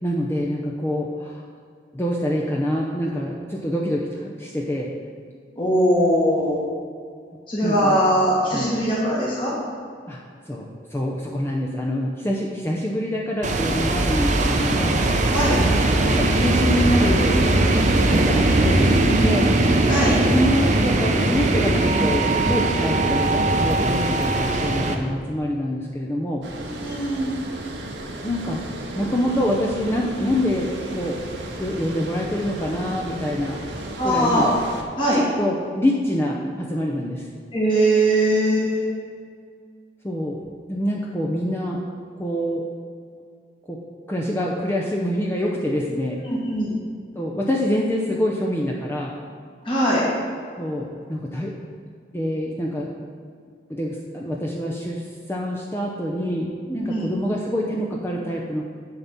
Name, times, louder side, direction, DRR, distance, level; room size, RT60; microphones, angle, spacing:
voice 1, 0.0-1.4 1.9-4.9 7.6-8.0 8.5-8.7 10.1-10.2 10.5-15.0 16.0-17.4 18.1-19.5 20.3-26.4 28.2-28.6 29.0-31.2 31.6-33.6 34.0-34.5 35.1-37.3 40.0-40.4 40.7-41.8 42.2-42.6 43.7-43.8 44.1-46.2 47.1-49.1 50.6-51.5 52.1-52.9 53.7-58.6, equal, 15° left, -3 dB, 0.7 m, -26 dB
voice 2, 5.5-6.6 7.5-9.5 15.3-15.6 18.9-19.4 19.9-20.2 26.6-27.3 34.0-34.5 35.0-35.2 37.5-38.9 46.3-46.7 49.6-50.0 56.7-57.1, right 1 dB, 30° left, -6 dB, 1.6 m, -21 dB
sound 1, 13.4-25.0, right 2 dB, 45° right, 0.8 m, -20 dB
Water, 26.4-34.8, right 1 dB, 80° right, 1.2 m, -34 dB
10.5 x 4.2 x 7.4 m, 2.2 s
head